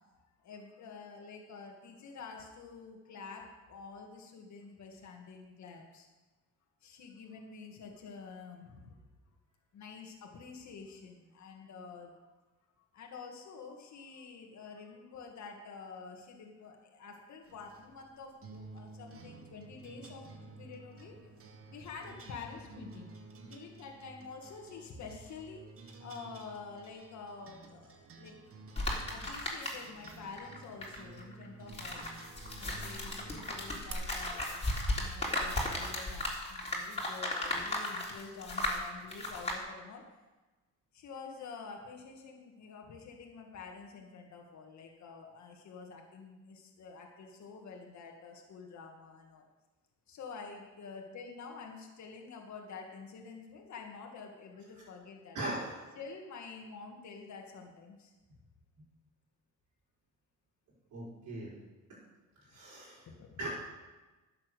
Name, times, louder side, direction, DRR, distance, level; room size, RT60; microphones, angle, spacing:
voice 1, 0.0-6.1 6.8-9.0 9.7-12.2 12.9-20.3 20.6-21.2 21.7-23.1 23.4-25.6 26.0-28.3 29.1-32.1 32.6-34.6 34.9-40.0 40.9-49.5 50.1-55.4 56.0-58.1 63.1-63.5, left 5 dB, 65° left, 1 dB, 2.0 m, -48 dB
sound 1, 17.5-33.9, right 3 dB, 50° right, 1.6 m, -52 dB
sound 2, 28.8-30.1 30.4-39.6, left 1 dB, 20° left, 3.4 m, -36 dB
voice 2, 55.3-55.8 60.9-61.5 61.9-62.0 62.4-63.1 63.4-63.5, right 1 dB, 75° right, -8 dB, 4.8 m, -39 dB
11.0 x 7.5 x 6.9 m, 1.2 s
cardioid pair, 90°, 30 cm